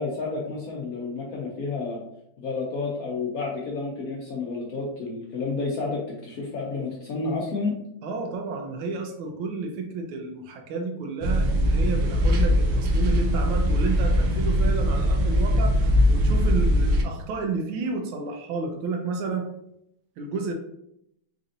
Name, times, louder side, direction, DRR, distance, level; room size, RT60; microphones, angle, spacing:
voice 1, 0.0-2.0 2.4-7.7, left 3 dB, 75° left, -3 dB, 0.8 m, -30 dB
voice 2, 8.0-19.5 20.2-20.5, right 3 dB, 90° right, 3 dB, 1.4 m, -31 dB
sound 1, 11.2-17.0, equal, 75° right, 1.2 m, -21 dB
4.1 x 2.5 x 2.6 m, 0.79 s
omnidirectional pair, 2.2 m